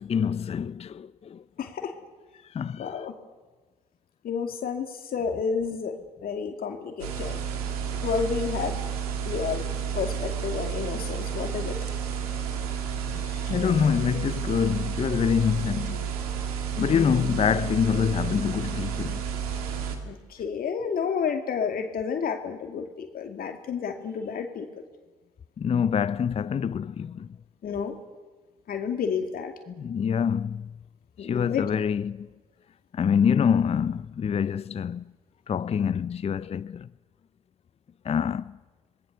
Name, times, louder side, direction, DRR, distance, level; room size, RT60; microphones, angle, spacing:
voice 1, 0.0-1.4 2.5-3.1 13.5-16.0 16.8-19.2 25.6-27.3 29.7-30.7 31.2-32.3 32.9-35.0 35.5-36.9 38.0-38.6, left 7 dB, 35° left, 0.6 m, -26 dB
voice 2, 1.6-1.9 2.8-3.1 4.2-4.9 5.1-7.4 8.0-8.8 9.3-9.7 9.9-11.8 13.3-13.4 16.8-17.4 20.0-24.7 27.6-27.9 28.7-29.5 31.2-31.6, left 6 dB, 50° left, 2.5 m, -30 dB
sound 1, 7.0-20.0, right 7 dB, 80° right, 2.5 m, -31 dB
27.5 x 19.5 x 6.8 m
hypercardioid pair, 50°, 19 cm